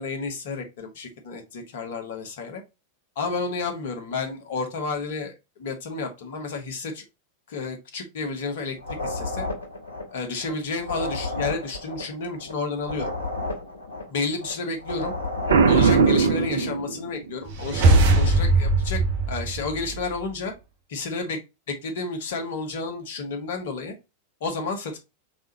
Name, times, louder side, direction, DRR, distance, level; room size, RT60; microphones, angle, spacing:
voice 1, 0.0-2.6 3.1-7.0 7.5-8.8 9.0-9.5 10.1-13.1 14.1-15.1 15.7-19.0 19.3-20.5 20.9-21.4 21.7-23.9 24.4-25.0, left 4 dB, 55° left, 4 dB, 1.2 m, -31 dB
sound 1, 8.8-16.1, left 2 dB, 75° left, 1.2 m, -32 dB
Boom, 15.5-17.3, right 5 dB, 65° right, 0.5 m, -19 dB
sound 2, 17.5-20.3, right 2 dB, 50° right, 1.1 m, -20 dB
4.8 x 3.7 x 2.9 m, 0.25 s
figure-of-eight pair, 90°, 0 cm